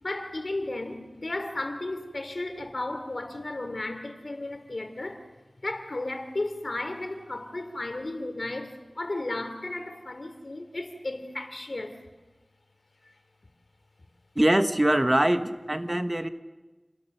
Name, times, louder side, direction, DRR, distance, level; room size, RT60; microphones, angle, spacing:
voice 1, 0.0-5.3 5.6-12.0, left 2 dB, 65° left, 2.8 m, -34 dB
voice 2, 14.3-16.3, right 1 dB, 30° right, 1.1 m, -23 dB
28.0 x 19.5 x 6.6 m
wide cardioid pair, 50°, 0 cm